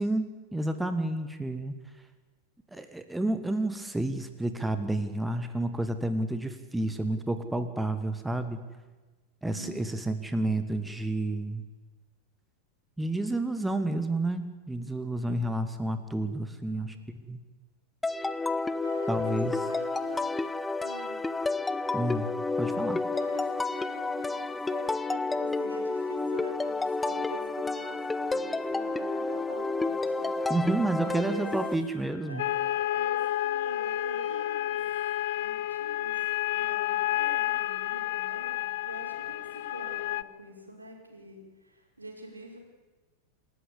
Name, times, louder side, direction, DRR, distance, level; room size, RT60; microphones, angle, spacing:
voice 1, 0.0-1.7 2.7-8.6 9.4-11.6 13.0-17.4 19.1-19.5 21.9-22.3 22.6-23.0 30.5-32.4, right 1 dB, 5° right, 9 dB, 1.5 m, -30 dB
voice 2, 9.4-10.1 16.7-17.0 18.4-20.4 20.8-21.2 23.1-30.6 31.0-31.5 32.3-34.8 35.3-42.6, right 1 dB, 80° right, 1 dB, 5.0 m, -45 dB
sound 1, 18.0-31.7, left 3 dB, 10° left, 0.9 m, -30 dB
Wind instrument woodwind instrument, 31.4-35.4, left 5 dB, 35° left, 7.7 m, -52 dB
sound 2, 32.4-40.2, left 14 dB, 55° left, 0.6 m, -30 dB
27.5 x 14.0 x 8.5 m, 1.3 s
figure-of-eight pair, 90°, 0 cm